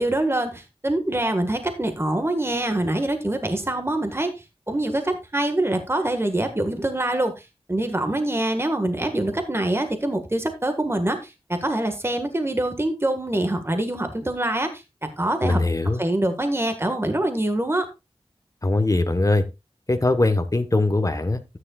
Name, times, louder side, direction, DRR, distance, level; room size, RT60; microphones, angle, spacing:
voice 1, 0.0-4.3 4.7-15.6 16.0-17.9, right 1 dB, 25° right, 7 dB, 1.6 m, -25 dB
voice 2, 15.4-16.0 18.6-19.4 19.9-21.6, left 2 dB, 35° left, 8 dB, 1.2 m, -21 dB
13.0 x 9.8 x 2.4 m, 0.24 s
wide cardioid pair, 70°, 11 cm